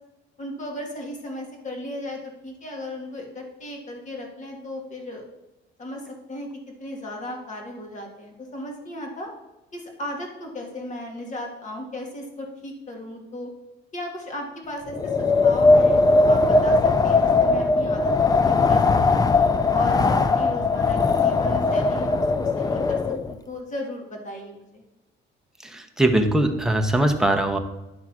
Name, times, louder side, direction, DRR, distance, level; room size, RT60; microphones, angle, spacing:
voice 1, 0.4-5.2 5.8-6.5 6.8-9.3 9.7-13.5 13.9-18.1 18.4-19.3 19.7-24.8, left 1 dB, 40° left, 1 dB, 2.1 m, -36 dB
Wind, 14.9-23.3, left 3 dB, 20° left, 0.4 m, -19 dB
voice 2, 25.6-27.6, right 1 dB, 5° right, 3 dB, 0.9 m, -21 dB
10.5 x 3.7 x 5.9 m, 0.99 s
cardioid pair, 125°, 20 cm